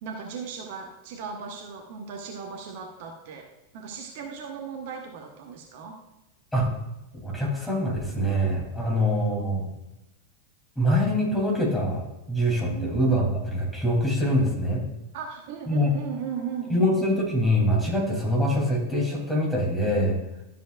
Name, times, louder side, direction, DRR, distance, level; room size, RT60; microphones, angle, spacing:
voice 1, 0.0-3.5 3.7-6.0 9.0-9.6 12.7-13.3 15.1-16.9, right 6 dB, 50° right, 2 dB, 1.0 m, -37 dB
voice 2, 7.2-9.6 10.8-14.8 15.7-15.9 16.7-20.2, equal, 5° left, -3 dB, 2.9 m, -24 dB
12.5 x 7.4 x 2.4 m, 0.95 s
figure-of-eight pair, 90°, 0 cm